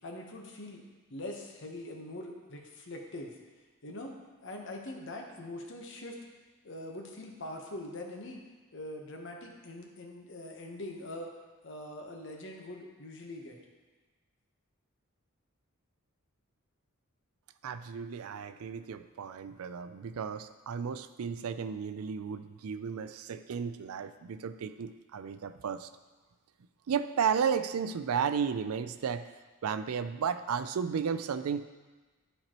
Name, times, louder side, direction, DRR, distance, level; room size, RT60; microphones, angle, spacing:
voice 1, 0.0-0.8 1.1-3.4 3.8-4.1 4.4-6.2 6.6-8.4 8.7-11.3 11.6-13.6, left 1 dB, 55° left, 1 dB, 1.0 m, -43 dB
voice 2, 17.6-25.9 26.9-29.3 29.6-31.6, right 6 dB, 80° right, 11 dB, 0.4 m, -33 dB
13.0 x 4.5 x 3.0 m, 1.3 s
head